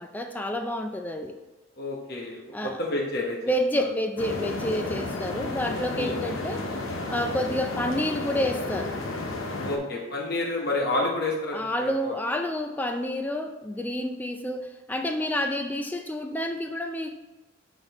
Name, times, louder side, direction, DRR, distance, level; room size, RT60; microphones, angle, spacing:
voice 1, 0.0-1.3 2.5-2.8 3.4-6.6 7.1-8.9 11.5-17.2, left 1 dB, 10° left, 5 dB, 0.3 m, -29 dB
voice 2, 1.8-3.4 3.8-3.9 5.9-6.4 9.6-12.2, left 2 dB, 50° left, -1 dB, 0.9 m, -30 dB
sound 1, 4.2-9.8, left 2 dB, 80° left, 0.8 m, -32 dB
7.0 x 4.0 x 4.0 m, 1.1 s
head